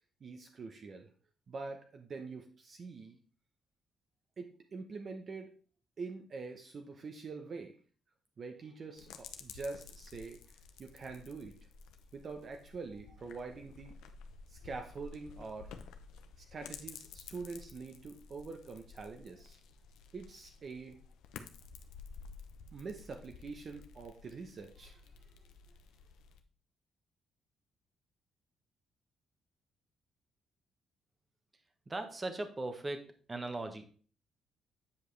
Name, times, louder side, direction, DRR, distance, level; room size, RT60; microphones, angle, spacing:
voice 1, 0.2-1.1 1.5-3.2 4.4-5.5 6.0-7.8 8.4-10.4 10.8-11.5 12.1-13.9 14.5-15.7 16.5-19.6 20.1-21.0 22.7-25.0, right 4 dB, 45° right, 4 dB, 0.8 m, -45 dB
sound 1, 9.0-26.4, left 6 dB, 90° left, 0.7 m, -53 dB
voice 2, 31.9-34.0, right 2 dB, 25° right, 7 dB, 1.1 m, -39 dB
8.2 x 5.1 x 3.2 m, 0.42 s
cardioid pair, 90°, 0 cm